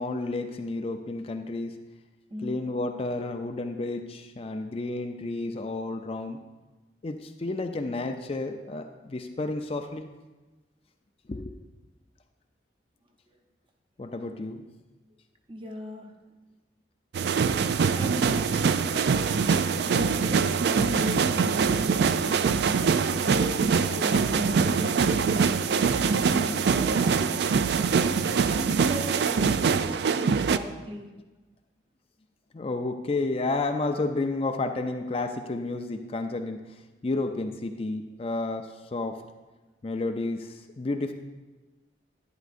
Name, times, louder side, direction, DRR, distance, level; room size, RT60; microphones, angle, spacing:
voice 1, 0.0-1.8 2.4-6.4 7.0-10.1 11.3-11.5 14.0-14.6 32.5-39.2 39.8-41.1, left 2 dB, 35° left, 6 dB, 0.4 m, -31 dB
voice 2, 15.5-16.1 17.9-19.0 19.5-22.6 23.2-27.4 28.0-31.1, left 1 dB, 30° right, 2 dB, 0.9 m, -37 dB
sound 1, 17.1-30.6, right 5 dB, 65° right, 0.3 m, -24 dB
11.0 x 10.0 x 2.5 m, 1.2 s
head